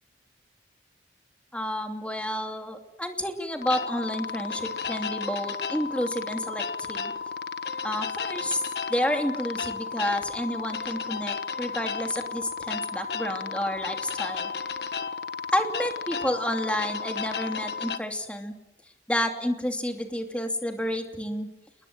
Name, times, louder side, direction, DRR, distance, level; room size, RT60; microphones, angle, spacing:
voice 1, 1.5-7.1 7.8-8.6 8.9-14.5 15.5-18.6 19.1-21.5, left 1 dB, 5° left, 4 dB, 2.7 m, -30 dB
sound 1, 3.6-18.0, left 5 dB, 65° left, 1.3 m, -33 dB
29.5 x 20.5 x 7.7 m, 0.86 s
head